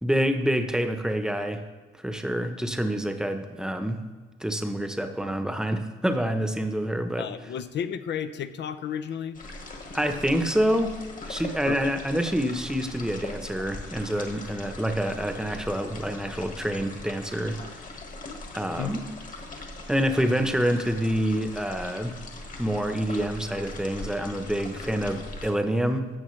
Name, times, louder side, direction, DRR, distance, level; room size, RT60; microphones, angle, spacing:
voice 1, 0.0-1.6 2.0-4.0 4.4-7.3 9.9-11.0 11.3-17.6 18.5-19.0 19.9-22.2 22.6-26.1, equal, 5° right, 7 dB, 0.9 m, -27 dB
voice 2, 7.2-9.4 11.7-11.9 18.8-18.9, left 8 dB, 65° left, 10 dB, 0.6 m, -32 dB
sound 1, 9.3-25.5, left 2 dB, 40° left, 1.7 m, -40 dB
15.5 x 6.0 x 3.2 m, 1.5 s
cardioid pair, 90°, 20 cm